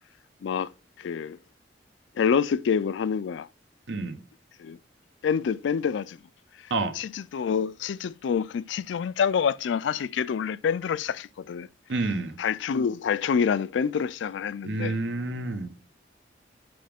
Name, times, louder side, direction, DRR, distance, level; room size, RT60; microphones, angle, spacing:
voice 1, 0.4-0.7 1.0-1.4 2.2-3.5 4.6-4.8 5.2-6.2 7.0-11.7 12.4-15.0, left 6 dB, 90° left, 0.3 m, -27 dB
voice 2, 3.9-4.2 6.7-7.0 11.9-12.4 14.6-15.7, right 2 dB, 90° right, 0.9 m, -29 dB
7.7 x 5.0 x 3.5 m
head